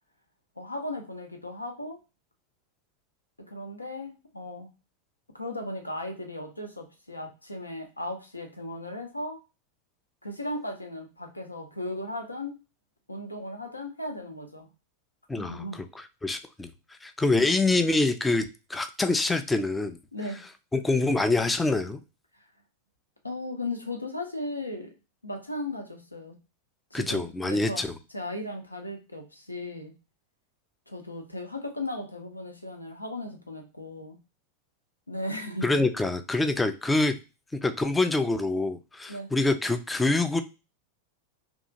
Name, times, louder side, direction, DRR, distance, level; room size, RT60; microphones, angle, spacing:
voice 1, 0.6-2.0 3.4-4.7 5.3-9.4 10.2-12.5 13.1-14.7 15.4-15.8 17.3-17.5 20.1-20.4 22.4-22.5 23.2-24.9 25.2-26.3 26.9-27.8 28.1-29.9 30.9-34.2 35.1-35.8 39.1-39.3, left 1 dB, 85° left, 3 dB, 0.6 m, -36 dB
voice 2, 15.3-15.6 16.2-16.7 17.0-20.0 20.7-22.0 26.9-27.9 35.6-37.2 37.5-40.4, left 2 dB, 10° left, 8 dB, 0.3 m, -25 dB
2.8 x 2.3 x 2.6 m, 0.29 s
figure-of-eight pair, 90°, 0 cm